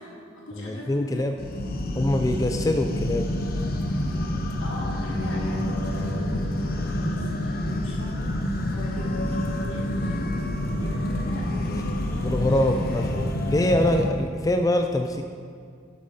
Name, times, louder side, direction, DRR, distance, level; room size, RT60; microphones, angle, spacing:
voice 1, 0.0-1.4 4.6-10.3 10.7-13.1, left 1 dB, 80° left, -5 dB, 2.6 m, -40 dB
voice 2, 0.6-1.3 2.0-3.3 12.2-15.2, left 1 dB, 15° left, 5 dB, 0.3 m, -24 dB
sound 1, 1.4-14.1, left 1 dB, 50° left, 0.8 m, -27 dB
11.5 x 7.4 x 4.1 m, 2.2 s
head